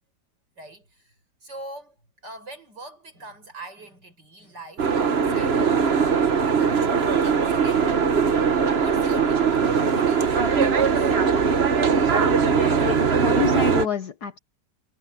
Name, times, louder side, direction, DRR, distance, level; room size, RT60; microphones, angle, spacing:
voice 1, 0.6-1.1 1.4-2.0 2.2-6.3 6.5-8.0 8.8-9.4 9.9-11.1, right 1 dB, 70° right, 8.4 m, -42 dB
Boat Water vehicle, 4.8-13.9, right 6 dB, 40° right, 1.3 m, -20 dB
voice 2, 12.4-14.4, left 6 dB, 65° left, 1.8 m, -29 dB
omnidirectional pair, 1.9 m